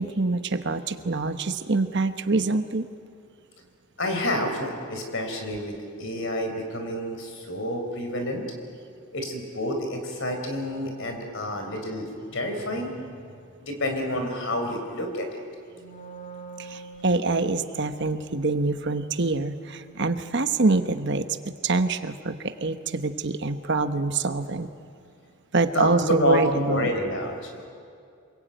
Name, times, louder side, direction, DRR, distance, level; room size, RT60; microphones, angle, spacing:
voice 1, 0.0-2.9 16.6-24.7 25.5-26.9, right 3 dB, 50° right, 9 dB, 1.0 m, -25 dB
voice 2, 4.0-8.4 9.1-12.9 13.6-15.4 25.7-27.7, left 1 dB, 55° left, 4 dB, 4.3 m, -29 dB
Wind instrument woodwind instrument, 15.7-21.4, right 3 dB, 35° left, 2.0 m, -47 dB
27.5 x 21.5 x 9.1 m, 2.4 s
head